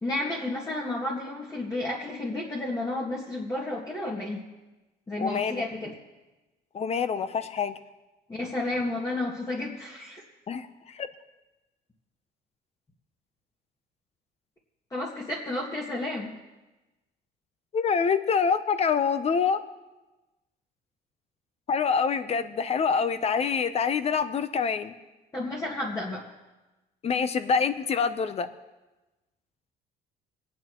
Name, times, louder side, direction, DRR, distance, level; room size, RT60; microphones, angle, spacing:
voice 1, 0.0-4.4 5.1-5.9 8.3-10.2 14.9-16.3 25.3-26.3, left 2 dB, 20° left, -4 dB, 1.9 m, -31 dB
voice 2, 5.2-5.6 6.7-7.7 10.5-10.7 10.9-11.1 17.7-19.6 21.7-24.9 27.0-28.5, left 6 dB, 40° left, 12 dB, 0.8 m, -26 dB
24.5 x 9.4 x 3.1 m, 1.1 s
cardioid pair, 110°, 17 cm